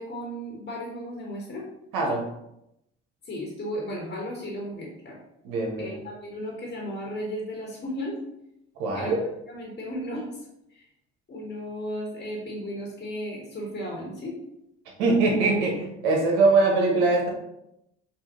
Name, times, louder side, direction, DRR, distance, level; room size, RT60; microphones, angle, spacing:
voice 1, 0.0-1.6 3.2-5.2 5.8-8.1 8.9-9.2 9.5-10.4 10.7-10.8 11.3-14.4, equal, 40° left, -3 dB, 1.4 m, -35 dB
voice 2, 5.4-6.0 8.8-9.2 15.0-17.3, right 3 dB, 85° right, 0 dB, 1.3 m, -22 dB
5.2 x 2.7 x 3.0 m, 0.82 s
supercardioid pair, 70°, 30 cm